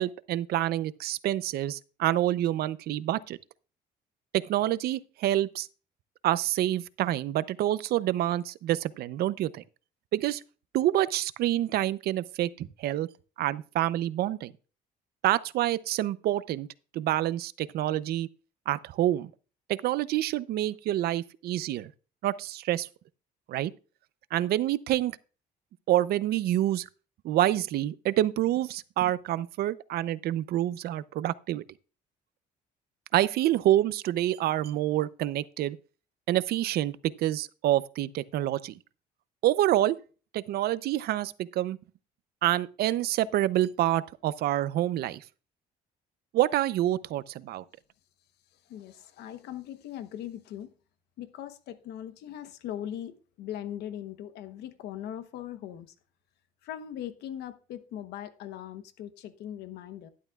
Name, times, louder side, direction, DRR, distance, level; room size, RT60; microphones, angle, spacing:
voice 1, 0.0-3.4 4.3-5.7 6.2-9.6 10.1-10.4 10.7-13.1 13.4-14.5 15.2-16.7 16.9-18.3 18.7-19.3 19.7-21.9 22.2-22.9 23.5-23.7 24.3-25.2 25.9-26.9 27.2-31.6 33.1-35.8 36.3-38.8 39.4-40.0 40.3-41.8 42.4-45.2 46.3-47.6, right 13 dB, 70° right, 0.6 m, -27 dB
voice 2, 48.7-50.7 51.2-55.9 56.6-60.1, left 11 dB, 80° left, 1.0 m, -40 dB
12.0 x 10.5 x 2.4 m
cardioid pair, 110°, 17 cm